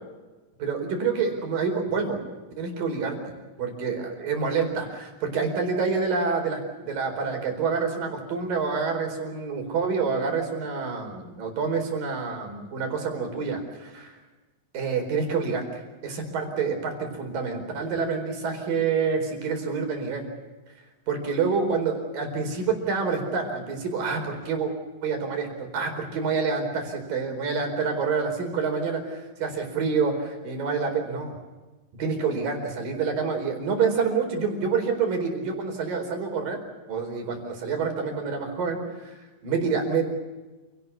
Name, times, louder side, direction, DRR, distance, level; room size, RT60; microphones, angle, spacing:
voice 1, 0.6-2.2 2.6-3.2 3.6-14.2 14.7-20.3 21.1-24.7 25.0-31.4 32.0-36.6 36.9-39.2 39.4-40.1, right 5 dB, 70° right, 4 dB, 6.2 m, -27 dB
28.5 x 18.5 x 8.3 m, 1.2 s
omnidirectional pair, 4.1 m